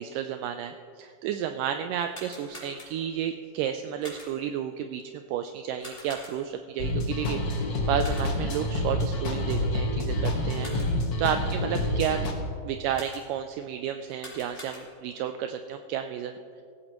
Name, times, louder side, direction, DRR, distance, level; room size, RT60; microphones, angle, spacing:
voice 1, 0.0-10.7 11.2-12.2 12.6-16.4, right 9 dB, 80° right, 7 dB, 2.0 m, -32 dB
sound 1, 2.0-3.2 4.0-4.6 5.8-6.7 8.0-8.6 10.4-11.1 12.9-13.5 14.0-15.2, left 1 dB, 20° left, 4.0 m, -46 dB
sound 2, 6.8-12.3, left 1 dB, 50° left, 1.3 m, -28 dB
18.0 x 15.5 x 3.0 m, 2.4 s
omnidirectional pair, 4.0 m